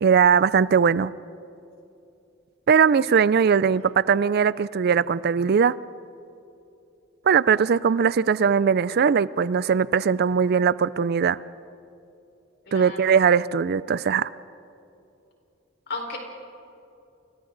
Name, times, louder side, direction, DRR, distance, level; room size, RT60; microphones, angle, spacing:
voice 1, 0.0-1.1 2.7-5.7 7.3-11.4 12.7-14.3, right 6 dB, 55° right, 18 dB, 0.4 m, -20 dB
voice 2, 3.7-4.1 12.7-13.1 15.9-16.2, left 3 dB, 60° left, 1 dB, 4.7 m, -36 dB
29.5 x 27.5 x 4.0 m, 2.7 s
head